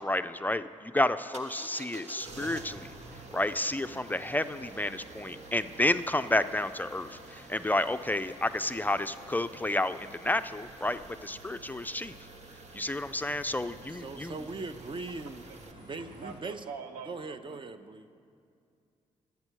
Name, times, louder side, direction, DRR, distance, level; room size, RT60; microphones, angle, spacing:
voice 1, 0.0-2.9 3.3-12.1 12.7-14.3, left 1 dB, 15° left, 11 dB, 0.4 m, -30 dB
sound 1, 1.3-15.7, right 3 dB, 55° right, 1.1 m, -49 dB
sound 2, 2.4-16.4, right 1 dB, 70° right, 2.0 m, -54 dB
voice 2, 13.9-15.4 15.8-16.7 17.1-18.1, right 3 dB, 40° right, 10 dB, 0.7 m, -40 dB
voice 3, 16.1-17.6, right 5 dB, 85° right, 6 dB, 0.7 m, -44 dB
9.5 x 8.2 x 6.2 m, 2.4 s
supercardioid pair, 50°, 13 cm